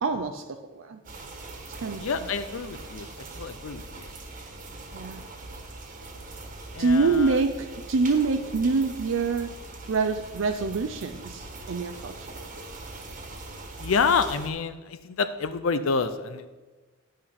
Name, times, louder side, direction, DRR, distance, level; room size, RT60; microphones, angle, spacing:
voice 1, 0.0-1.0 1.7-2.3 4.9-5.2 6.8-9.5 9.9-12.3, right 4 dB, 70° right, 7 dB, 0.5 m, -26 dB
sound 1, 1.0-14.5, right 2 dB, 40° right, 1.4 m, -41 dB
voice 2, 2.0-3.1 3.4-4.1 6.7-7.4 13.8-16.5, left 5 dB, 90° left, 11 dB, 0.6 m, -28 dB
10.5 x 6.5 x 5.8 m, 1.3 s
head